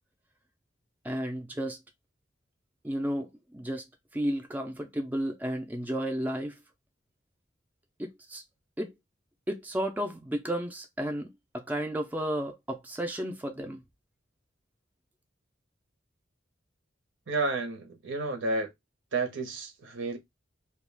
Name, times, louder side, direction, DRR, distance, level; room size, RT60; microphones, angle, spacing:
voice 1, 1.0-1.8 2.8-3.8 4.1-6.6 8.0-8.4 8.8-8.9 9.5-11.3 11.5-13.8, equal, 10° right, 0.4 m, -32 dB
voice 2, 17.3-18.7 19.1-20.2, right 3 dB, 75° right, 0.8 m, -31 dB
2.3 x 2.2 x 3.2 m
head